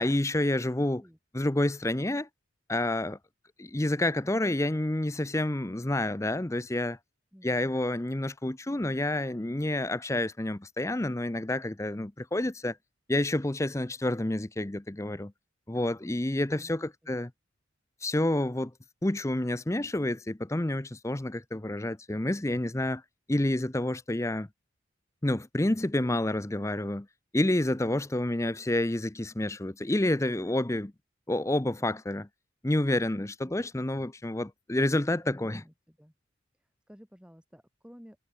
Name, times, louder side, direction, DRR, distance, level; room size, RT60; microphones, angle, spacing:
voice 1, 0.0-1.0 1.3-2.3 2.7-3.2 3.6-7.0 7.4-12.8 13.1-15.3 15.7-17.3 18.0-18.7 19.0-23.0 23.3-24.5 25.2-27.1 27.3-30.9 31.3-32.3 32.6-35.6, left 1 dB, 15° left, 0.6 m, -29 dB
voice 2, 7.3-7.7 16.5-17.2 35.2-36.1 36.5-38.2, equal, 5° right, 5.3 m, -53 dB
head